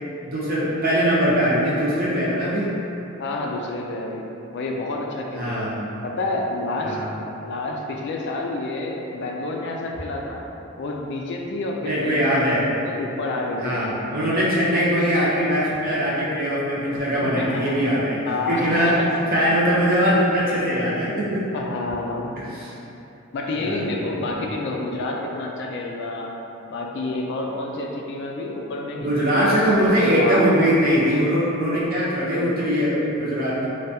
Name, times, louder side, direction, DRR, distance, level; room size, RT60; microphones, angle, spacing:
voice 1, 0.3-2.7 5.4-5.9 6.8-7.1 11.8-12.6 13.6-18.2 18.5-18.9 19.3-21.5 22.5-22.7 23.6-23.9 29.0-33.7, equal, 45° right, -7 dB, 0.7 m, -21 dB
voice 2, 3.2-5.6 6.0-7.0 7.4-10.4 10.8-12.3 12.6-14.1 16.9-17.8 18.3-19.2 21.5-22.4 23.3-26.4 26.7-29.2 30.0-30.5, left 2 dB, 55° left, 0 dB, 0.3 m, -29 dB
3.3 x 2.2 x 2.7 m, 2.9 s
head